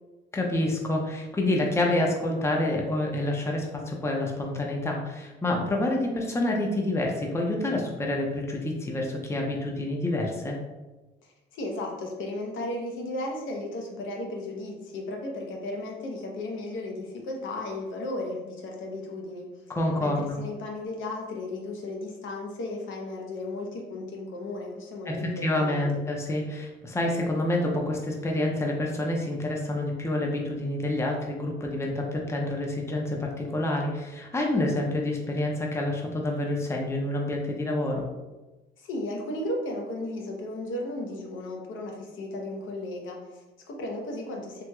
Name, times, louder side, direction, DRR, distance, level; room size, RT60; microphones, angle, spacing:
voice 1, 0.3-10.6 19.7-20.4 25.1-38.1, left 1 dB, 15° left, 0 dB, 0.5 m, -28 dB
voice 2, 11.5-19.5 20.0-26.0 38.8-44.6, left 1 dB, 80° left, 0 dB, 0.7 m, -35 dB
3.0 x 2.9 x 2.2 m, 1.1 s
cardioid pair, 90°, 20 cm